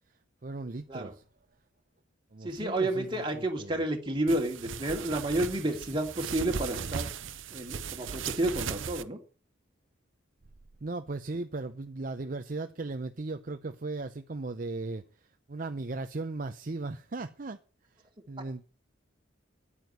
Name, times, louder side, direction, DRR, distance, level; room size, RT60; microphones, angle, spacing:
voice 1, 0.4-1.2 2.3-3.8 10.8-15.0 15.5-17.6 18.3-18.6, right 3 dB, 45° right, 0.7 m, -37 dB
voice 2, 2.4-7.1 7.5-9.2, right 1 dB, 25° right, 2.5 m, -30 dB
sound 1, 4.3-9.0, right 6 dB, 85° right, 0.8 m, -37 dB
10.0 x 9.1 x 9.3 m
head